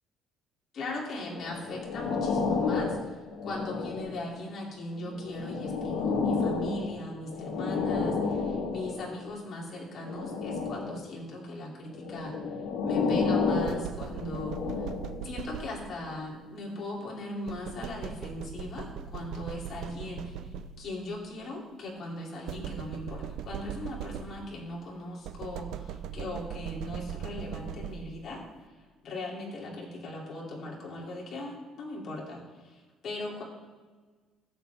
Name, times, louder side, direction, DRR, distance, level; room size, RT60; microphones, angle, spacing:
voice 1, 0.7-3.2 3.4-12.4 12.8-14.9 15.2-20.4 20.8-28.4 29.0-32.8 33.0-33.4, left 1 dB, 45° left, -3 dB, 2.6 m, -39 dB
sound 1, 1.3-4.4 5.0-9.2 10.0-11.1 11.9-15.3 16.0-16.1, left 4 dB, 85° left, 1.5 m, -31 dB
sound 2, 13.7-16.1 17.5-21.0 22.5-24.7 25.2-28.3, right 9 dB, 75° right, 0.5 m, -40 dB
15.5 x 7.2 x 3.4 m, 1.4 s
cardioid pair, 140°, 0 cm